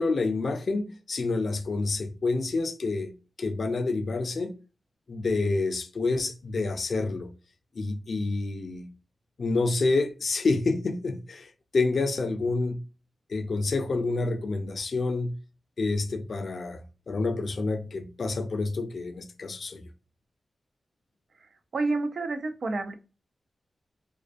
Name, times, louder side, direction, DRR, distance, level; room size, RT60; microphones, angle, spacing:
voice 1, 0.0-3.1 3.4-4.6 5.1-7.3 7.8-8.9 9.4-11.5 11.7-12.8 13.3-15.3 15.8-19.8, left 3 dB, 55° left, 0.3 m, -28 dB
voice 2, 21.7-22.9, right 3 dB, 65° right, 0.4 m, -29 dB
2.5 x 2.2 x 2.4 m
wide cardioid pair, 110°, 0 cm